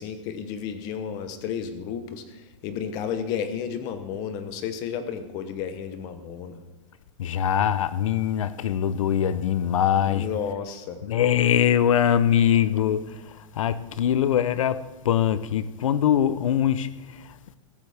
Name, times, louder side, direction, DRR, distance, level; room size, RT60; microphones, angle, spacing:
voice 1, 0.0-2.2 2.6-6.6 10.0-11.0, left 7 dB, 25° left, 0.8 m, -32 dB
voice 2, 7.2-10.3 11.0-13.2 13.5-17.2, left 9 dB, 85° left, 0.7 m, -22 dB
14.5 x 13.5 x 3.4 m
supercardioid pair, 180°, 16 cm